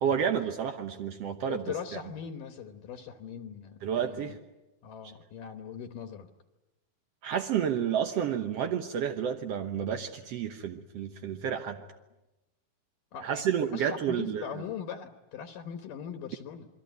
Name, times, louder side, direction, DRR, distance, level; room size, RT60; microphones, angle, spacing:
voice 1, 0.0-1.6 3.8-4.4 7.2-11.8 13.2-14.4, right 8 dB, 80° right, 6 dB, 1.4 m, -30 dB
voice 2, 1.5-4.4 4.8-6.3 13.1-16.7, left 8 dB, 65° left, 7 dB, 2.6 m, -40 dB
28.0 x 22.5 x 9.4 m, 1.0 s
omnidirectional pair, 4.4 m